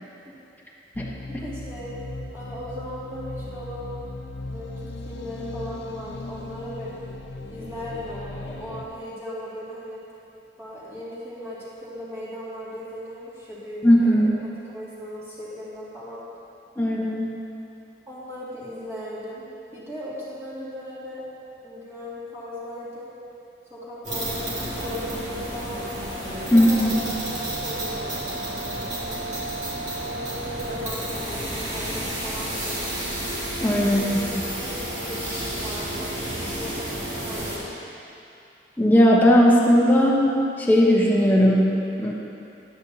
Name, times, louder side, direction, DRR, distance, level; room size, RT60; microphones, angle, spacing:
sound 1, 0.9-8.8, left 2 dB, 85° left, 0.6 m, -37 dB
voice 1, 1.2-1.9 2.3-3.9 4.4-6.9 7.5-10.0 10.6-14.3 14.7-16.2 18.1-21.2 21.6-23.1 23.7-25.9 26.4-29.4 30.0-32.8 33.8-34.3 34.6-36.1 36.4-37.7, equal, 15° right, -10 dB, 2.2 m, -37 dB
voice 2, 13.8-14.3 16.8-17.3 26.5-26.9 33.5-34.3 38.8-40.3 40.6-42.1, equal, 10° left, -4 dB, 1.0 m, -18 dB
sound 2, 24.0-37.6, right 1 dB, 40° right, 2.3 m, -31 dB
11.0 x 9.7 x 2.8 m, 2.7 s
head